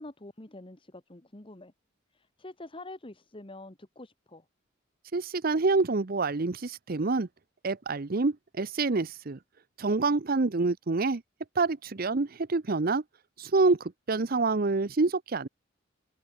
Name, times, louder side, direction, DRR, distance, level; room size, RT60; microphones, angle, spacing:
voice 1, 0.0-1.7 2.1-4.4, left 2 dB, 30° left, 1.7 m, -46 dB
voice 2, 5.1-7.3 7.6-9.4 9.8-11.2 11.6-13.0 13.4-15.5, right 3 dB, 50° right, 0.7 m, -27 dB
head